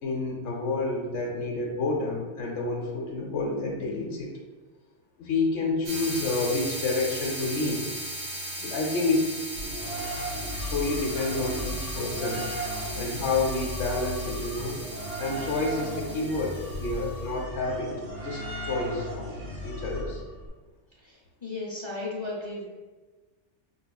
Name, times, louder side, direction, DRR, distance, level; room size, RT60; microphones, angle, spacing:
voice 1, 0.0-4.3 5.2-7.9 8.6-9.3 9.6-9.8 10.1-10.2 10.6-12.4 12.9-14.8 15.2-17.9 18.2-19.2 19.6-20.2, left 3 dB, 70° left, -2 dB, 1.0 m, -29 dB
sound 1, 5.8-17.1, right 1 dB, 50° right, 0.9 m, -37 dB
sound 2, 9.6-20.5, equal, 75° right, 1.3 m, -36 dB
voice 2, 21.0-22.7, left 2 dB, 40° left, -5 dB, 0.4 m, -35 dB
5.4 x 2.4 x 2.2 m, 1.3 s
omnidirectional pair, 1.2 m